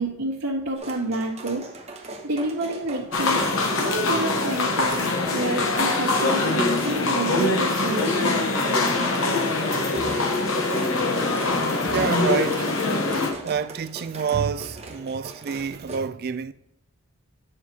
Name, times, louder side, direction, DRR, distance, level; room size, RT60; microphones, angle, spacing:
voice 1, 0.0-1.7 2.2-8.4, right 2 dB, 80° right, 1.5 m, -29 dB
sound 1, 0.8-16.0, right 2 dB, 30° right, 0.9 m, -40 dB
sound 2, 3.1-13.3, left 2 dB, 65° left, 1.0 m, -23 dB
voice 2, 11.9-12.7 13.2-16.5, right 6 dB, 45° right, 0.4 m, -28 dB
9.4 x 5.8 x 2.8 m
head